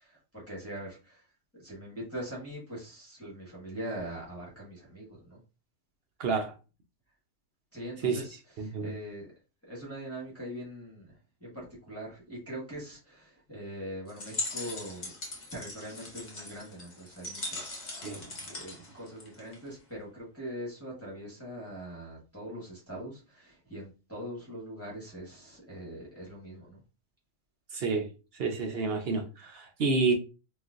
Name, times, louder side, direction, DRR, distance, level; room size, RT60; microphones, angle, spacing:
voice 1, 0.0-5.4 7.7-9.3 9.6-15.1 15.5-26.8, right 1 dB, 10° left, 1.1 m, -42 dB
voice 2, 6.2-6.5 8.0-8.2 8.6-8.9 18.0-18.3 27.7-28.1 28.3-30.1, right 4 dB, 60° right, 0.7 m, -29 dB
sound 1, 14.1-19.7, left 2 dB, 35° left, 1.0 m, -40 dB
4.0 x 2.4 x 2.5 m
omnidirectional pair, 1.4 m